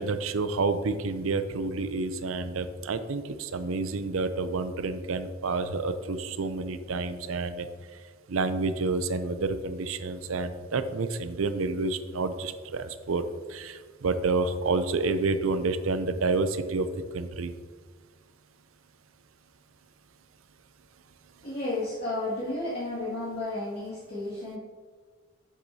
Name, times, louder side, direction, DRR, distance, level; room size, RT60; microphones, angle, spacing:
voice 1, 0.0-7.7 8.3-16.9 17.1-17.5, right 3 dB, 90° right, 11 dB, 0.6 m, -29 dB
voice 2, 21.4-24.6, left 2 dB, 55° left, -10 dB, 2.1 m, -32 dB
9.8 x 7.5 x 2.8 m, 1.5 s
head